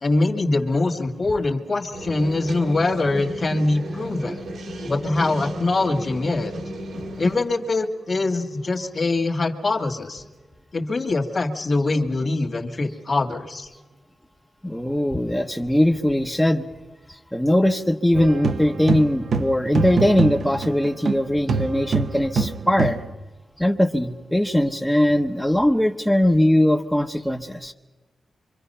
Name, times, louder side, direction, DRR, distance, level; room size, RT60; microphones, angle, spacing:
voice 1, 0.0-4.4 4.8-6.5 7.2-10.2 10.7-13.7, left 2 dB, 45° left, 7 dB, 2.0 m, -23 dB
sound 1, 1.9-7.4, equal, 85° right, 3.3 m, -33 dB
voice 2, 14.6-16.6 17.1-23.0 23.6-27.7, left 1 dB, 5° left, 2 dB, 1.0 m, -20 dB
sound 2, 18.1-21.2 21.5-23.1, right 4 dB, 65° right, 0.9 m, -25 dB
25.5 x 25.0 x 5.6 m, 1.2 s
cardioid pair, 75°, 0 cm